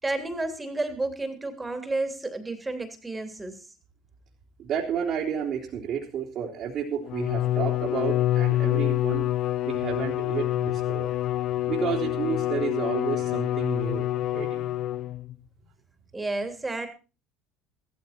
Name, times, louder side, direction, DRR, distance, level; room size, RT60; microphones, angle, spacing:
voice 1, 0.0-3.6 16.1-16.9, right 2 dB, 15° right, 7 dB, 3.2 m, -31 dB
voice 2, 4.6-9.2 9.7-11.2 11.7-14.6, right 7 dB, 55° right, -2 dB, 3.2 m, -31 dB
Bowed string instrument, 7.0-15.3, left 14 dB, 60° left, 0.7 m, -27 dB
15.0 x 14.0 x 4.4 m, 0.33 s
supercardioid pair, 95°, 0 cm